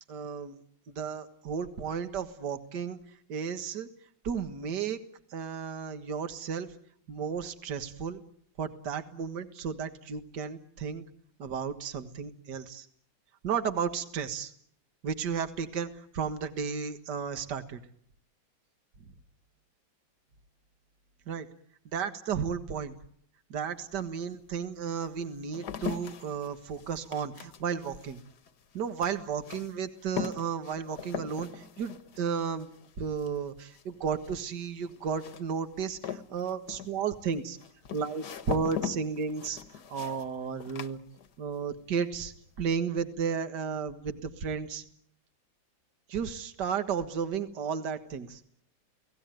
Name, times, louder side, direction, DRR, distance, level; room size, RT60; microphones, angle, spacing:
voice 1, 0.1-0.6 0.9-3.0 3.3-3.9 4.2-5.0 5.3-6.7 7.1-8.2 8.6-11.0 11.4-12.9 13.4-14.5 15.0-17.8 21.3-21.5 21.9-23.0 23.5-28.2 28.7-32.7 33.0-37.6 37.9-39.6 39.9-41.0 41.4-44.8 46.1-48.4, right 6 dB, 60° right, 9 dB, 2.1 m, -33 dB
sound 1, 23.7-23.8 24.5-41.7 41.9-42.5, left 8 dB, 55° left, 1.7 m, -41 dB
30.0 x 18.0 x 9.2 m, 0.65 s
omnidirectional pair, 2.2 m